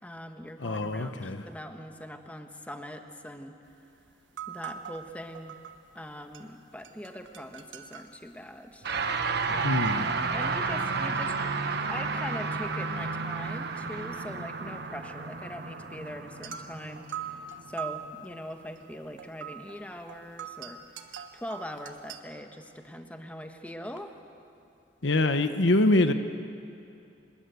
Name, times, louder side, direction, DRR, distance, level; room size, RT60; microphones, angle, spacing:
voice 1, 0.0-3.5 4.5-5.6 5.9-8.9 9.5-9.7 10.3-17.4 17.7-20.8 21.3-24.1, equal, 10° left, 5 dB, 1.3 m, -42 dB
voice 2, 0.6-1.5 9.6-10.1 25.0-26.1, left 2 dB, 75° left, 8 dB, 1.1 m, -24 dB
sound 1, 3.7-3.8 4.1-6.1 6.3-12.6 12.9-22.2, right 8 dB, 80° right, 1.4 m, -44 dB
sound 2, 8.8-18.3, right 4 dB, 60° right, 1.2 m, -32 dB
26.0 x 21.0 x 8.2 m, 2.6 s
head